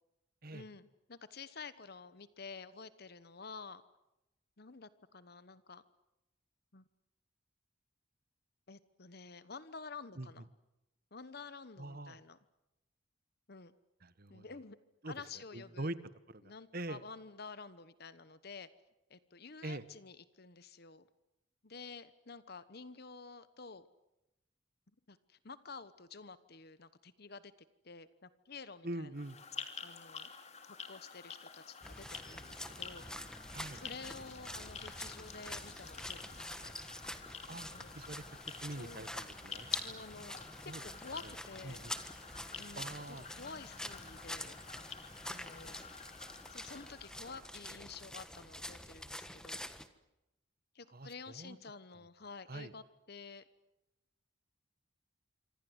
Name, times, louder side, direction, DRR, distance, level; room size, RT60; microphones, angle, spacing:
voice 1, 0.5-3.8 4.6-5.8 6.7-6.9 8.7-10.4 11.1-12.4 13.5-13.7 14.3-14.8 15.1-15.9 16.4-18.7 19.1-21.1 21.6-23.9 25.1-27.5 27.8-29.1 29.8-30.3 30.9-33.0 33.7-36.7 37.7-38.0 38.7-39.1 39.8-40.3 40.6-41.9 42.6-44.6 45.3-45.9 46.5-49.6 50.7-53.5, left 4 dB, 55° left, 14 dB, 1.1 m, -50 dB
voice 2, 11.8-12.2 14.0-14.4 15.0-15.1 15.5-16.0 16.3-17.0 19.6-19.8 28.8-29.4 33.5-33.8 37.5-37.7 37.9-39.7 40.7-40.8 41.2-41.3 41.6-41.9 42.7-43.3 50.9-51.6 52.5-52.7, right 2 dB, 50° right, 14 dB, 1.4 m, -44 dB
sound 1, 29.1-47.6, left 6 dB, 35° left, 2.9 m, -49 dB
sound 2, 31.8-49.9, left 1 dB, 5° left, 1.4 m, -47 dB
26.5 x 26.0 x 8.0 m, 0.92 s
head